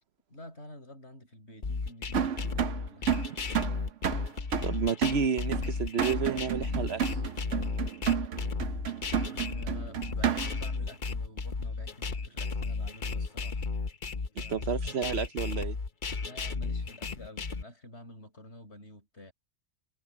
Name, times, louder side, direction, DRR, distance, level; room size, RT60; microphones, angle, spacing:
voice 1, 0.3-3.3 9.2-13.6 14.4-14.9 16.2-19.3, left 1 dB, 60° left, 7.7 m, -49 dB
sound 1, 1.6-17.6, left 4 dB, 45° left, 1.1 m, -34 dB
sound 2, 2.1-10.7, right 8 dB, 75° right, 1.3 m, -32 dB
voice 2, 4.6-7.2 14.5-15.8, right 6 dB, 60° right, 1.0 m, -30 dB
omnidirectional pair, 1.3 m